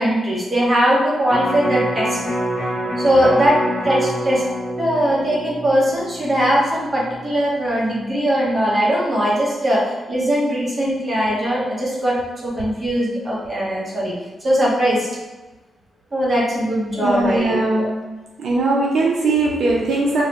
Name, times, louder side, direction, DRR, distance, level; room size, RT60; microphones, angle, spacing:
voice 1, 0.0-2.2 3.0-3.6 3.8-4.4 4.8-9.8 10.1-14.1 14.4-15.1 16.1-17.9, equal, 25° right, -6 dB, 0.8 m, -20 dB
Electric guitar, 1.3-7.5 7.9-8.0, equal, 45° left, 0.6 m, -27 dB
voice 2, 16.9-18.0 18.4-20.2, right 2 dB, 70° right, -3 dB, 0.4 m, -19 dB
3.1 x 2.0 x 2.8 m, 1.2 s
wide cardioid pair, 180°, 0 cm